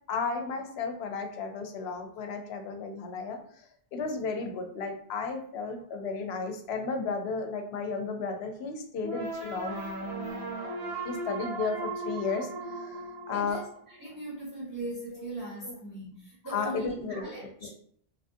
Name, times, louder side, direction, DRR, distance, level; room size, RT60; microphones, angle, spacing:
voice 1, 0.1-9.8 11.0-13.6 15.1-15.3 15.6-15.7 16.5-17.3 17.6-17.7, left 4 dB, 85° left, 5 dB, 0.8 m, -34 dB
sound 1, 9.0-14.0, right 2 dB, 85° right, 1.0 m, -36 dB
voice 2, 13.3-17.7, right 1 dB, 25° right, -6 dB, 0.5 m, -40 dB
2.9 x 2.4 x 2.5 m, 0.63 s
omnidirectional pair, 1.0 m